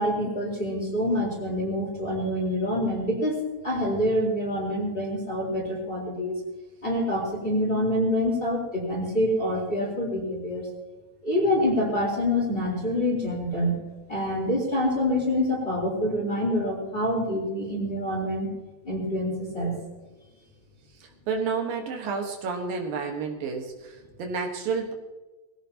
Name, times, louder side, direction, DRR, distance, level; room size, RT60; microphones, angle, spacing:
voice 1, 0.0-6.3 6.8-10.7 11.2-13.8 14.1-18.5 18.8-19.8, left 1 dB, 15° left, -4 dB, 3.8 m, -26 dB
voice 2, 21.0-24.9, right 5 dB, 70° right, 3 dB, 3.1 m, -30 dB
21.5 x 17.0 x 2.9 m, 1.2 s
omnidirectional pair, 4.3 m